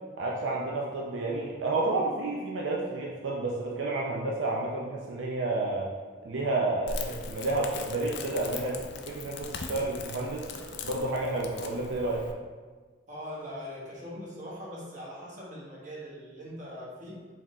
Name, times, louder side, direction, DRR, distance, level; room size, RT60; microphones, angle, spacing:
voice 1, 0.2-5.9 6.2-10.5 10.8-12.2, right 2 dB, 75° right, -3 dB, 0.5 m, -30 dB
Crackle, 6.9-12.3, left 4 dB, 60° left, 0.4 m, -40 dB
voice 2, 13.1-17.2, equal, 40° right, -5 dB, 1.2 m, -41 dB
4.8 x 3.6 x 3.0 m, 1.4 s
head